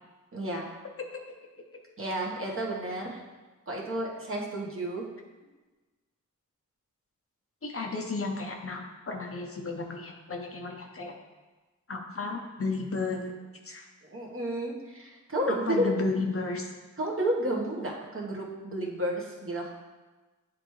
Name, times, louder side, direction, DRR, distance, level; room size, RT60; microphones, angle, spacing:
voice 1, 0.3-0.7 2.0-3.2 3.7-5.0 14.0-15.9 17.0-19.7, right 1 dB, 40° right, -2 dB, 1.3 m, -31 dB
voice 2, 7.6-8.8 9.1-11.1 11.9-13.3 13.6-13.9 15.5-16.7, left 3 dB, 45° left, 2 dB, 0.8 m, -33 dB
10.0 x 3.4 x 3.2 m, 1.2 s
wide cardioid pair, 85°, 32 cm